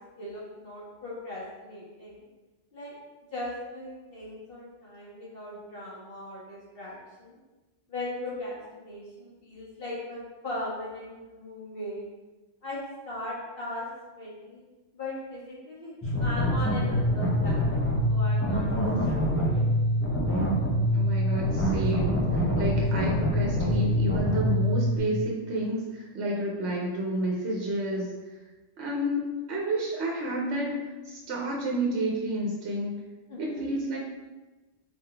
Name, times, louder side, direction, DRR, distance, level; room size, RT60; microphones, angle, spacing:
voice 1, 0.2-2.2 2.7-3.0 3.3-7.3 7.9-12.1 12.6-14.6 14.9-19.6 33.3-33.7, left 1 dB, 50° left, -6 dB, 1.5 m, -39 dB
sound 1, 16.0-25.0, equal, 15° left, 0.5 m, -25 dB
voice 2, 20.9-22.3 22.6-28.1 28.8-33.0 33.4-34.0, right 1 dB, 65° right, -2 dB, 1.0 m, -30 dB
4.3 x 3.7 x 3.3 m, 1.2 s
omnidirectional pair, 1.3 m